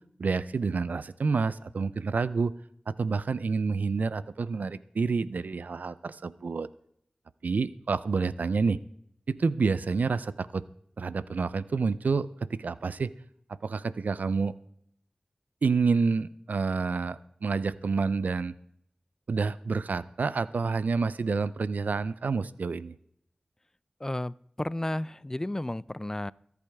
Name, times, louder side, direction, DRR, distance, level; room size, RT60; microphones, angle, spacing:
voice 1, 0.2-2.5 3.0-6.7 7.4-8.8 9.3-10.6 11.0-13.1 13.6-14.5 15.6-18.5 19.3-23.0, right 4 dB, 85° right, 17 dB, 0.5 m, -28 dB
voice 2, 24.0-26.3, left 1 dB, 20° left, 20 dB, 0.4 m, -32 dB
24.5 x 8.4 x 3.5 m, 0.71 s
wide cardioid pair, 55°, 3 cm